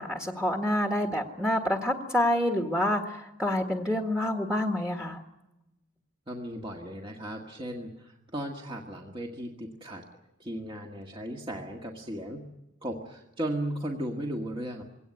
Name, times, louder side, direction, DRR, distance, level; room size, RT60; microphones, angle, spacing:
voice 1, 0.0-5.2, left 1 dB, 5° right, 3 dB, 1.7 m, -27 dB
voice 2, 6.3-10.0 10.4-12.5 12.8-14.8, right 1 dB, 25° right, 0 dB, 1.7 m, -36 dB
23.0 x 17.5 x 9.5 m, 0.95 s
head